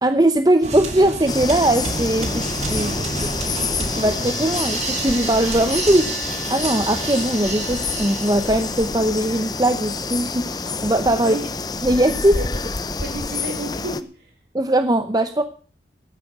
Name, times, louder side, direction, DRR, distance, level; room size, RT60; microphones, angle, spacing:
voice 1, 0.0-2.4 2.7-2.9 3.8-6.1 6.5-11.4 11.8-12.4 14.5-15.4, right 1 dB, 20° right, 9 dB, 0.7 m, -20 dB
sound 1, 0.6-9.1, right 3 dB, 40° right, 2.2 m, -29 dB
sound 2, 1.3-14.0, left 4 dB, 20° left, 0.7 m, -28 dB
voice 2, 2.7-3.2 11.2-11.4 12.3-12.5 13.0-14.3, right 1 dB, 65° right, 1 dB, 6.1 m, -32 dB
12.5 x 9.2 x 7.9 m, 0.40 s
head